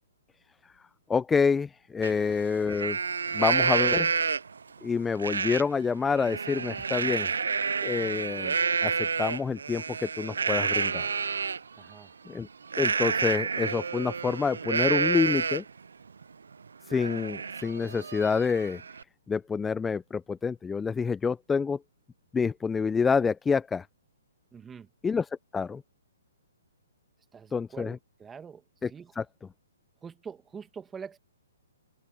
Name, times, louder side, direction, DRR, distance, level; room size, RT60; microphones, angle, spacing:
voice 1, 1.1-3.0 3.3-4.1 4.8-7.3 7.8-8.6 8.8-11.1 12.3-12.5 12.8-15.6 16.9-18.8 19.3-21.8 22.3-23.9 25.0-25.2 25.5-25.8 27.5-28.0 28.8-28.9 29.2-29.3, left 5 dB, 10° left, 0.5 m, -27 dB
Livestock farm animals working animals, 2.0-2.1 2.5-4.6 5.2-5.6 6.0-11.6 12.7-15.8 16.2-16.3 16.7-19.0, right 5 dB, 80° right, 0.4 m, -29 dB
voice 2, 11.7-12.2 24.5-24.9 27.3-29.1 30.0-31.2, right 6 dB, 10° right, 1.9 m, -45 dB
open air
hypercardioid pair, 140°, 0 cm